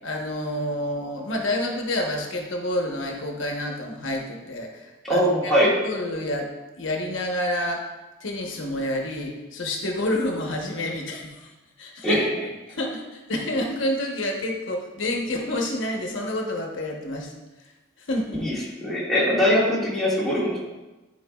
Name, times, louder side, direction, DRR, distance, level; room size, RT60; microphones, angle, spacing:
voice 1, 0.0-5.5 5.8-6.5 6.8-7.8 8.2-11.5 11.8-12.2 12.7-17.3 18.0-18.5, left 1 dB, 80° left, 1 dB, 1.0 m, -28 dB
voice 2, 5.0-5.7 12.0-12.3 18.4-18.5 18.8-20.6, equal, ahead, -8 dB, 1.8 m, -21 dB
11.0 x 4.6 x 2.3 m, 1.1 s
head